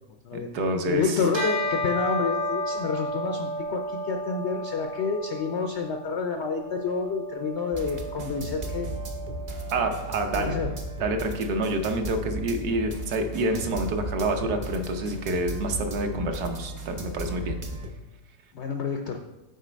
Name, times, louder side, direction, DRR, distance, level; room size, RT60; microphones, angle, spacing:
voice 1, 0.3-1.2 9.7-10.6 11.0-17.6, right 2 dB, 70° right, 5 dB, 1.2 m, -28 dB
voice 2, 0.9-8.9 10.3-10.8 18.5-19.2, left 5 dB, 85° left, 5 dB, 0.6 m, -29 dB
Bell, 1.3-11.0, equal, 90° right, 3.0 m, -33 dB
sound 1, 7.7-17.9, right 2 dB, 40° right, 0.6 m, -36 dB
6.5 x 4.6 x 5.1 m, 1.0 s
omnidirectional pair, 1.8 m